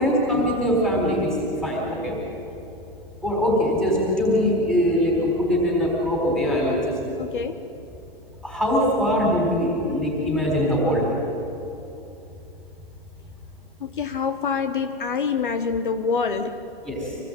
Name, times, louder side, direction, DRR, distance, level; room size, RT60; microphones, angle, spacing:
voice 1, 0.0-2.1 3.2-7.0 8.4-11.1 16.8-17.2, equal, ahead, -3 dB, 4.1 m, -22 dB
voice 2, 7.2-7.6 13.8-16.6, left 5 dB, 60° left, 8 dB, 1.3 m, -26 dB
26.5 x 20.0 x 8.9 m, 2.8 s
hypercardioid pair, 175°, 29 cm